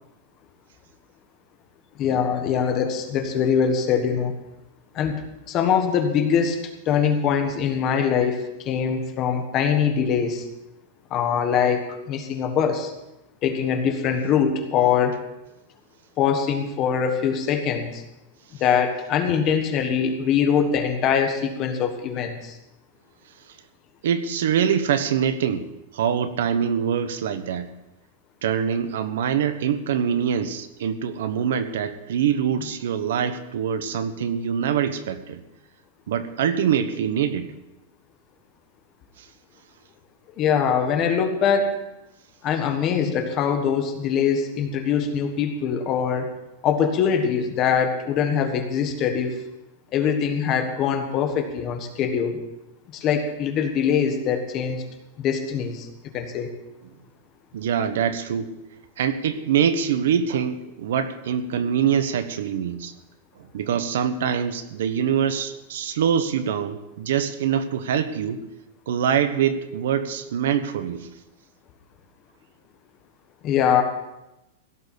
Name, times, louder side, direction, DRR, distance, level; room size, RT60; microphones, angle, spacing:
voice 1, 2.0-4.3 4.9-6.6 6.8-10.5 11.1-12.9 13.4-15.1 16.2-18.0 18.6-22.6 40.4-41.8 42.4-46.3 46.6-49.4 49.9-52.4 52.9-54.8 55.2-55.9 56.1-56.5 73.4-73.8, left 7 dB, 25° left, 6 dB, 1.4 m, -23 dB
voice 2, 24.0-25.7 25.9-27.7 28.4-35.4 36.1-37.5 57.5-58.5 59.0-62.9 63.5-68.4 68.9-71.1, right 8 dB, 65° right, 11 dB, 1.2 m, -24 dB
16.5 x 6.8 x 8.3 m, 0.93 s
supercardioid pair, 180°, 0 cm